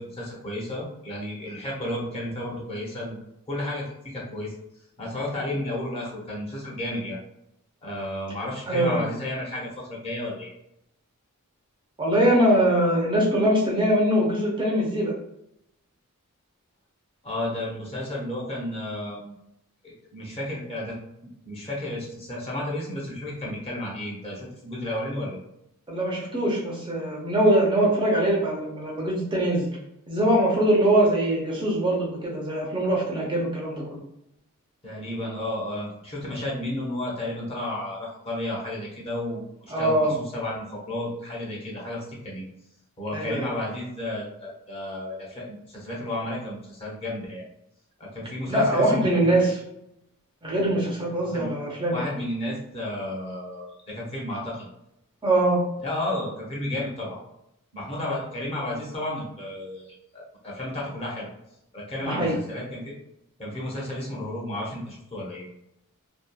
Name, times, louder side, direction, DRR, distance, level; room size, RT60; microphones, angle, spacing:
voice 1, 0.0-3.2 3.5-4.5 5.0-7.2 7.8-10.5 17.2-19.3 19.8-21.0 21.5-25.4 34.8-42.4 43.0-47.4 48.0-49.4 51.3-51.5 51.9-54.7 55.8-57.2 57.7-61.3 61.7-62.9 63.4-65.5, left 1 dB, 25° left, -4 dB, 0.7 m, -32 dB
voice 2, 8.7-9.1 12.0-15.1 25.9-29.7 30.1-34.0 39.7-40.2 43.1-43.5 48.5-49.6 50.4-52.1 55.2-55.6 62.0-62.4, right 1 dB, 20° right, -3 dB, 0.5 m, -22 dB
2.7 x 2.3 x 2.3 m, 0.80 s
head